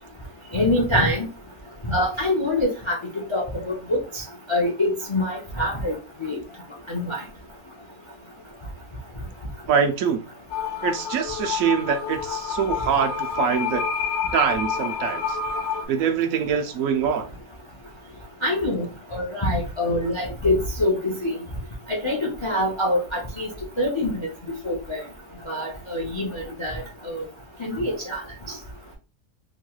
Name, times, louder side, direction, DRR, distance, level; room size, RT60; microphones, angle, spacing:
voice 1, 0.5-1.3 1.8-3.0 3.3-3.5 3.9-4.2 4.5-6.0 6.2-6.4 6.9-7.2 18.4-18.9 19.1-21.3 21.9-23.5 23.8-24.2 24.6-25.0 25.5-27.2 27.6-28.2, left 1 dB, 40° left, -2 dB, 0.4 m, -24 dB
voice 2, 9.7-10.2 10.8-13.8 14.3-15.4 15.9-17.3, right 7 dB, 75° right, 5 dB, 1.0 m, -24 dB
sound 1, 10.5-15.9, left 6 dB, 90° left, 1.1 m, -28 dB
3.0 x 2.9 x 2.3 m, 0.31 s
omnidirectional pair, 1.5 m